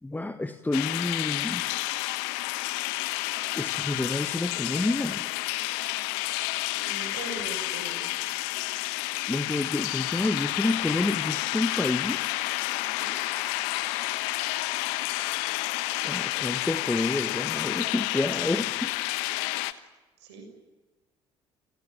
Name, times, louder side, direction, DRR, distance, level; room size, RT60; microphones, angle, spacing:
voice 1, 0.0-1.6 3.5-5.3 9.3-12.4 16.0-18.9, left 2 dB, 10° left, 9 dB, 1.5 m, -29 dB
sound 1, 0.7-19.7, left 19 dB, 70° left, 1.2 m, -30 dB
voice 2, 6.8-8.1 12.9-13.1 20.2-20.4, right 3 dB, 75° right, 5 dB, 6.5 m, -40 dB
sound 2, 10.7-16.3, left 6 dB, 45° left, 5.0 m, -45 dB
30.0 x 19.0 x 8.9 m, 1.2 s
figure-of-eight pair, 50°, 14 cm